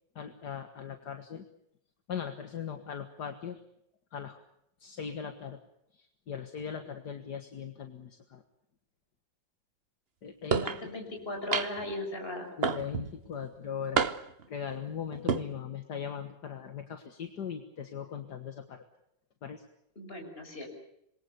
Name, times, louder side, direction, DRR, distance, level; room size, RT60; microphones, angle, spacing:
voice 1, 0.2-1.4 2.1-3.6 4.1-4.4 4.8-5.6 6.3-8.4 10.2-10.9 12.6-14.1 14.5-18.8 19.4-19.6, left 7 dB, 65° left, 7 dB, 2.1 m, -39 dB
voice 2, 10.5-12.5 20.0-20.7, left 2 dB, 30° left, 3 dB, 6.3 m, -37 dB
sound 1, 10.5-10.8 11.5-11.9 12.6-13.1 14.0-14.4 15.1-15.4, right 5 dB, 40° right, 1.1 m, -28 dB
27.0 x 22.5 x 6.9 m, 0.77 s
omnidirectional pair, 2.0 m